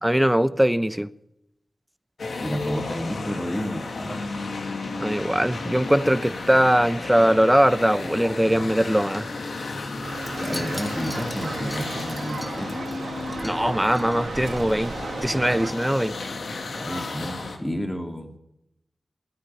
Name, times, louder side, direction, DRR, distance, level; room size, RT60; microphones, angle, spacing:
voice 1, 0.0-1.1 5.0-9.3 13.4-16.2, equal, 5° right, 0.8 m, -21 dB
sound 1, 2.2-17.6, left 3 dB, 80° left, 2.6 m, -33 dB
voice 2, 2.4-4.2 10.4-12.8 16.7-18.4, equal, 15° left, 2.6 m, -31 dB
sound 2, 10.0-15.7, right 4 dB, 85° right, 1.6 m, -35 dB
Wind chime, 10.2-14.7 15.0-15.2 15.5-15.6, left 1 dB, 30° left, 2.1 m, -42 dB
15.5 x 9.8 x 9.6 m
wide cardioid pair, 65°, 0 cm